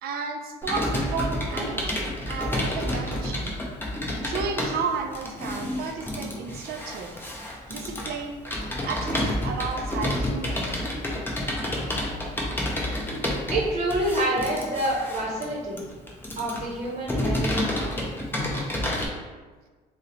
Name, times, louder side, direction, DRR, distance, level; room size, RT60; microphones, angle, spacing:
voice 1, 0.0-2.0 2.3-3.6 4.2-7.1 7.7-8.4 8.8-10.7, right 5 dB, 70° right, 4 dB, 0.4 m, -33 dB
Computer keyboard, 0.6-19.1, left 1 dB, 10° left, 0.5 m, -29 dB
voice 2, 13.5-15.8 16.4-18.1, right 1 dB, 40° right, -3 dB, 0.8 m, -27 dB
2.7 x 2.1 x 3.8 m, 1.4 s
cardioid pair, 110°, 17 cm